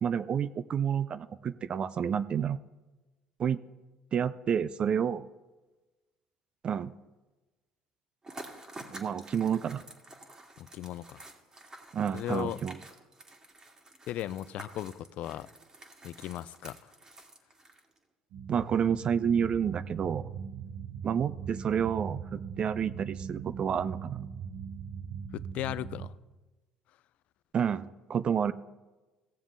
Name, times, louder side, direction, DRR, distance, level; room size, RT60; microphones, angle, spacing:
voice 1, 0.0-2.6 3.4-3.6 4.1-5.3 6.6-6.9 8.9-9.8 11.9-12.8 18.5-20.3 21.0-24.3 27.5-28.5, right 8 dB, 45° right, 0.4 m, -29 dB
sound 1, 8.2-18.0, right 2 dB, 25° right, 1.9 m, -50 dB
voice 2, 10.6-11.2 12.1-12.6 14.1-15.5 16.0-16.9 25.3-26.1, left 13 dB, 65° left, 0.4 m, -37 dB
sound 2, 18.3-26.1, right 7 dB, 70° right, 0.7 m, -40 dB
16.5 x 7.2 x 3.7 m
hypercardioid pair, 70°, 2 cm